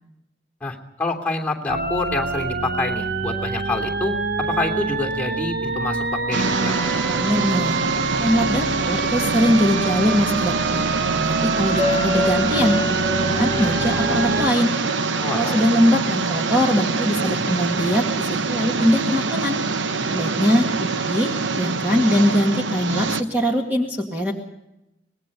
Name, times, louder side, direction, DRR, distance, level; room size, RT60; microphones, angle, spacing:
voice 1, 0.6-4.1 4.5-6.7 15.2-15.6, left 2 dB, 10° left, -1 dB, 3.0 m, -27 dB
sound 1, 1.7-14.5, right 3 dB, 55° right, 1.2 m, -26 dB
sound 2, 6.3-23.2, right 4 dB, 80° right, 1.0 m, -24 dB
voice 2, 7.2-7.8 8.2-10.9 11.1-14.7 15.3-19.6 20.1-24.3, equal, 10° right, 0 dB, 2.1 m, -22 dB
sound 3, 11.8-16.5, left 2 dB, 40° right, 2.5 m, -29 dB
25.0 x 20.0 x 5.4 m, 0.87 s
head